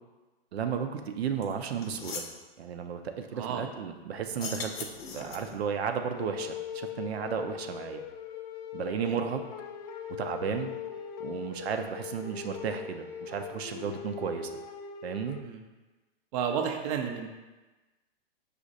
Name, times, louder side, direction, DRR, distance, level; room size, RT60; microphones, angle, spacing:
voice 1, 0.5-2.2 2.6-4.7 5.1-8.0 8.7-9.4 10.2-10.7 11.2-14.5 15.0-15.4, right 7 dB, 80° right, 6 dB, 0.6 m, -33 dB
sound 1, 1.4-1.5 1.8-2.4 4.3-5.6, left 5 dB, 75° left, 0.7 m, -39 dB
voice 2, 3.3-3.6 9.0-9.2 15.4-15.6 16.3-17.3, right 7 dB, 35° right, 3 dB, 0.5 m, -32 dB
sound 2, 6.1-15.4, left 7 dB, 50° left, 0.4 m, -40 dB
5.1 x 2.5 x 3.9 m, 1.2 s
hypercardioid pair, 125°, 31 cm